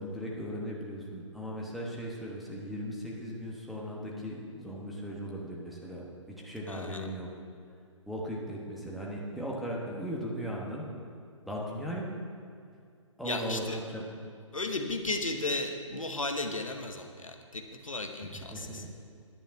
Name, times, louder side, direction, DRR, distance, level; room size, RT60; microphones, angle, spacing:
voice 1, 0.0-7.3 8.1-10.9 11.4-12.1 13.2-14.1 18.5-19.0, equal, ahead, -5 dB, 1.2 m, -38 dB
voice 2, 6.7-7.1 13.2-13.8 14.5-19.0, left 2 dB, 85° left, 4 dB, 1.2 m, -35 dB
10.5 x 9.0 x 5.8 m, 2.3 s
figure-of-eight pair, 130°, 17 cm